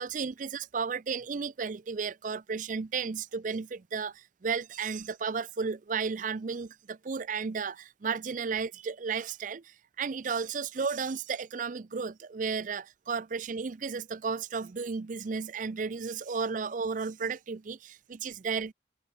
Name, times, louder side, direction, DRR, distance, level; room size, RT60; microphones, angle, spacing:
voice 1, 0.0-18.7, right 5 dB, 45° right, 0.5 m, -33 dB
head